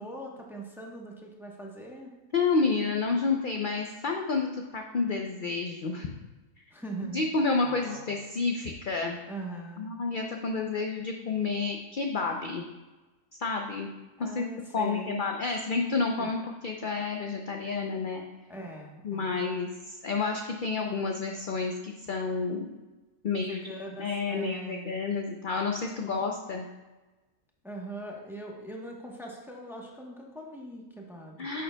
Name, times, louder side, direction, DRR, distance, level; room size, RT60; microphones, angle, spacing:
voice 1, 0.0-2.1 6.7-7.2 7.6-8.1 9.3-9.9 14.2-15.2 16.2-16.3 18.5-19.4 23.4-24.9 27.6-31.4, right 1 dB, ahead, -1 dB, 0.8 m, -41 dB
voice 2, 2.3-6.1 7.1-9.2 9.8-12.6 13.4-13.9 14.2-14.4 14.7-18.2 19.0-22.7 23.2-23.6 24.0-26.7 31.4-31.6, left 4 dB, 60° left, 3 dB, 0.5 m, -30 dB
10.0 x 6.8 x 2.2 m, 1.2 s
omnidirectional pair, 1.5 m